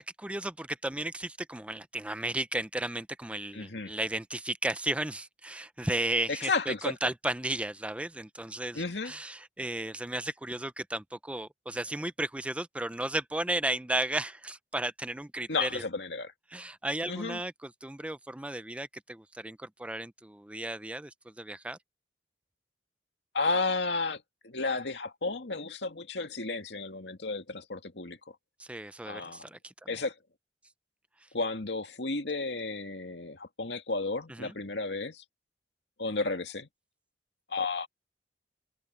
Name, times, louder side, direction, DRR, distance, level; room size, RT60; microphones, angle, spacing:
voice 1, 0.0-15.8 16.5-21.8 28.6-30.0 34.3-34.5, right 1 dB, 5° right, 0.5 m, -34 dB
voice 2, 3.5-3.9 6.3-6.9 8.7-9.1 15.5-16.3 17.1-17.4 23.3-28.2 29.1-29.5 29.9-30.1 31.3-35.2 36.0-36.7 37.5-37.9, left 3 dB, 85° left, 2.1 m, -32 dB
head